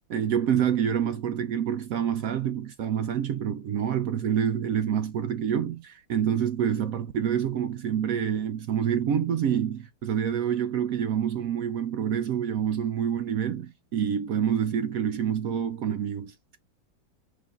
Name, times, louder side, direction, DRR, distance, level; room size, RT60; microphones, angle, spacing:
voice 1, 0.1-16.6, right 8 dB, 75° right, 0.7 m, -27 dB
5.0 x 2.5 x 3.6 m
omnidirectional pair, 2.0 m